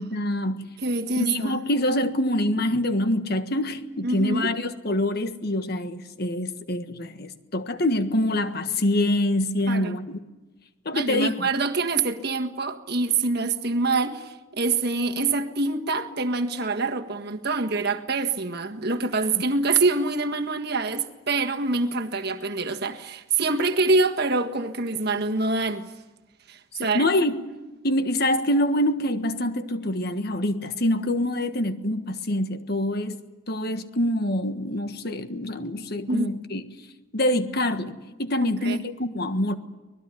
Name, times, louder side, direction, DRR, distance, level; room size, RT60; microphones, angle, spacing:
voice 1, 0.0-0.7 1.2-10.2 10.8-11.5 26.8-27.4 27.8-33.2 33.5-36.6 37.1-39.5, left 1 dB, 50° left, 1.5 m, -25 dB
voice 2, 0.8-1.6 4.0-4.5 9.7-10.0 10.9-25.9 26.5-27.1 36.1-36.3 38.4-38.8, right 3 dB, 50° right, 1.6 m, -25 dB
25.0 x 20.5 x 10.0 m
head